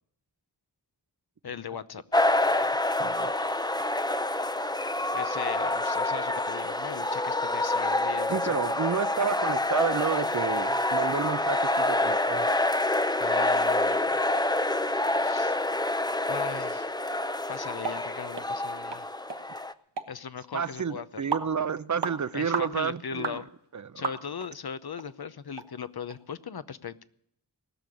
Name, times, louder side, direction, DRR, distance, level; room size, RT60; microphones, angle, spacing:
voice 1, 1.4-2.0 5.1-8.6 13.2-14.1 15.2-15.6 16.3-16.9 17.5-19.1 20.1-21.2 22.3-23.5 24.0-27.0, left 7 dB, 60° left, 0.8 m, -38 dB
sound 1, 2.1-19.7, left 2 dB, 10° left, 0.6 m, -27 dB
voice 2, 3.0-3.3 8.3-12.5 20.5-23.4 23.7-24.1, right 6 dB, 45° right, 0.6 m, -30 dB
sound 2, 17.8-18.0 18.4-18.5 18.9-19.0 19.3-19.4 20.0-20.1 20.6-20.7 21.3-21.5 22.0-22.2 22.5-22.7 23.2-23.4 24.0-24.5 25.0-25.1 25.6-25.7 26.1-26.2, right 4 dB, 80° right, 1.3 m, -32 dB
19.0 x 6.7 x 10.0 m
wide cardioid pair, 70°, 41 cm